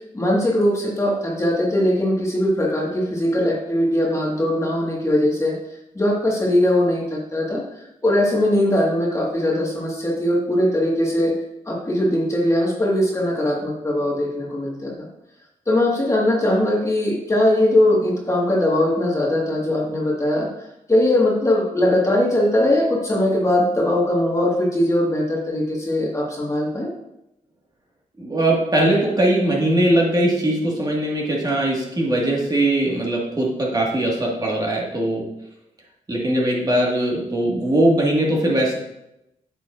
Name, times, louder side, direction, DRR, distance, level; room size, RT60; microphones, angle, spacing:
voice 1, 0.1-5.6 5.9-11.3 11.6-15.1 15.7-20.5 20.9-26.9, left 1 dB, 20° left, -2 dB, 1.7 m, -20 dB
voice 2, 28.2-35.3 36.1-38.8, right 1 dB, 30° right, -2 dB, 1.7 m, -20 dB
8.9 x 6.8 x 2.5 m, 0.88 s
cardioid pair, 100°, 14 cm